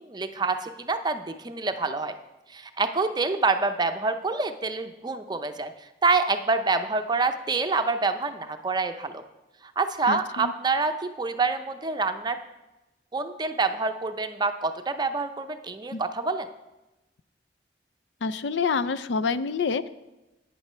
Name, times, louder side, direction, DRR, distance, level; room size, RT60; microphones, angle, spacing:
voice 1, 0.0-2.1 2.5-5.7 6.0-9.2 9.8-12.4 13.1-16.5, right 3 dB, 25° right, 8 dB, 0.6 m, -27 dB
voice 2, 10.1-10.5 15.9-16.0 18.2-19.9, left 5 dB, 75° left, 14 dB, 0.4 m, -27 dB
9.1 x 9.0 x 5.6 m, 1.0 s
head